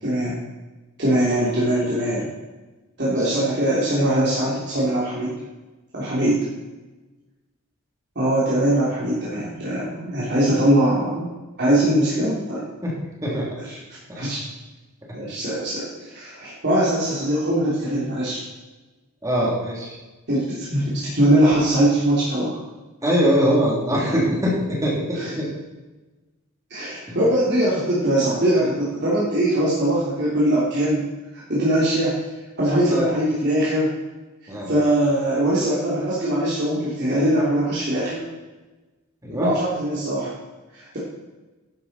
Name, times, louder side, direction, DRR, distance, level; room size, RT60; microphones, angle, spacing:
voice 1, 0.0-0.4 1.0-2.3 3.0-5.3 5.9-6.4 8.1-11.3 11.6-12.6 13.3-13.8 14.1-14.4 15.1-18.4 20.3-22.6 25.1-25.3 26.7-31.0 31.5-32.1 32.6-33.9 34.7-38.2 39.3-40.3 40.7-41.0, right 1 dB, 55° right, -8 dB, 3.3 m, -21 dB
voice 2, 19.2-19.9 23.0-25.5 27.1-27.2 32.9-33.1 34.5-34.7 39.2-39.5, equal, 15° right, -4 dB, 3.3 m, -22 dB
12.0 x 10.5 x 4.4 m, 1.2 s
head